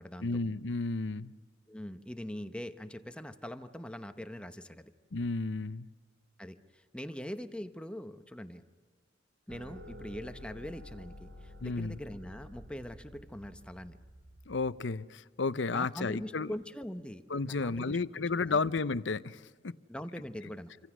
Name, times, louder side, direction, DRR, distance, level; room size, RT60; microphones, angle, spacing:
voice 1, 0.2-1.3 5.1-5.9 11.6-12.0 14.5-16.5 17.3-19.7, left 3 dB, 80° left, 15 dB, 0.7 m, -32 dB
voice 2, 1.7-4.9 6.4-8.6 9.5-14.0 15.7-18.0 18.5-18.6 19.9-20.7, equal, 5° left, 8 dB, 0.9 m, -42 dB
sound 1, 9.5-14.7, equal, 85° right, 2.6 m, -50 dB
29.0 x 25.5 x 6.2 m, 1.5 s
head